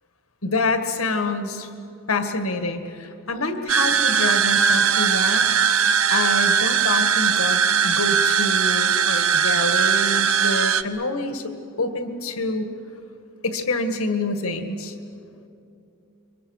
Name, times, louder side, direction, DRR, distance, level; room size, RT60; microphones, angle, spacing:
voice 1, 0.4-1.7 2.1-5.5 5.8-11.5 11.8-12.7 13.4-14.9, left 2 dB, 80° left, 7 dB, 1.8 m, -27 dB
sound 1, 3.7-10.8, right 7 dB, 75° right, 0.8 m, -20 dB
28.0 x 24.0 x 6.5 m, 2.7 s
head